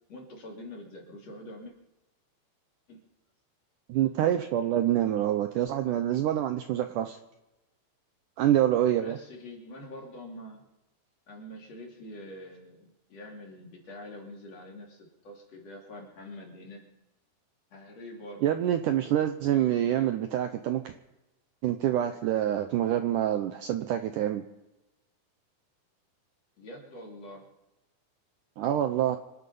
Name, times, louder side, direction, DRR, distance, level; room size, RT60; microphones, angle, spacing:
voice 1, 0.1-1.7 2.9-3.0 8.9-10.7 11.3-16.9 17.7-18.5 26.6-27.5, left 1 dB, 45° left, -1 dB, 3.9 m, -45 dB
voice 2, 3.9-7.2 8.4-9.2 18.4-20.9 21.6-24.4 28.6-29.2, right 11 dB, 75° right, 8 dB, 1.9 m, -26 dB
26.5 x 9.9 x 5.5 m, 0.98 s
omnidirectional pair, 4.4 m